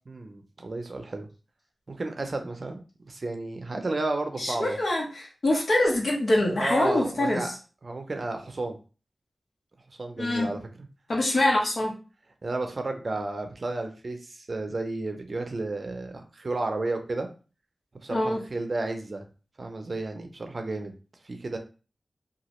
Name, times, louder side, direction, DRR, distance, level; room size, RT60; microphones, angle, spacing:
voice 1, 0.1-1.3 1.9-4.8 6.6-7.5 7.8-8.8 10.0-10.6 12.4-17.3 18.0-19.3 19.6-20.9 21.2-21.6, right 2 dB, 50° right, 5 dB, 0.5 m, -32 dB
voice 2, 4.4-7.6 10.2-10.5 11.1-11.9 18.1-18.4, left 1 dB, 65° left, -2 dB, 1.1 m, -24 dB
2.8 x 2.3 x 3.0 m, 0.35 s
wide cardioid pair, 85°, 0 cm